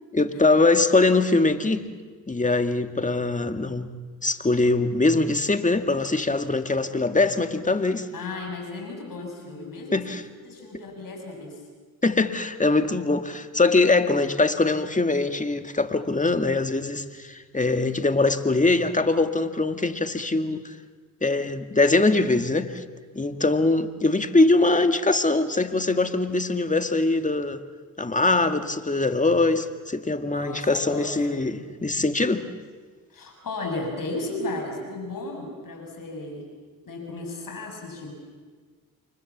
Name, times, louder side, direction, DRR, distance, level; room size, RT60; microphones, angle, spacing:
voice 1, 0.1-1.9 2.3-3.9 4.2-8.1 9.9-10.2 12.0-20.7 21.2-22.8 23.1-27.6 28.0-32.4, left 3 dB, 20° left, 8 dB, 2.0 m, -22 dB
voice 2, 8.1-10.0 10.4-11.6 30.3-31.4 33.1-36.5 36.9-38.1, left 2 dB, 60° left, 2 dB, 7.8 m, -34 dB
29.5 x 24.0 x 7.4 m, 1.5 s
cardioid pair, 65°, 37 cm